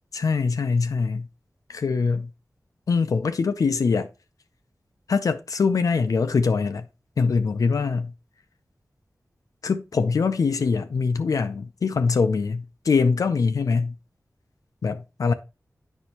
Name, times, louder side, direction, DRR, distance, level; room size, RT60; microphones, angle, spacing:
voice 1, 0.1-1.3 1.7-2.3 2.9-4.1 5.1-6.9 7.2-8.1 9.6-13.9 14.8-15.3, left 5 dB, 90° left, 0.5 m, -23 dB
8.1 x 5.2 x 2.9 m
wide cardioid pair, 65°, 6 cm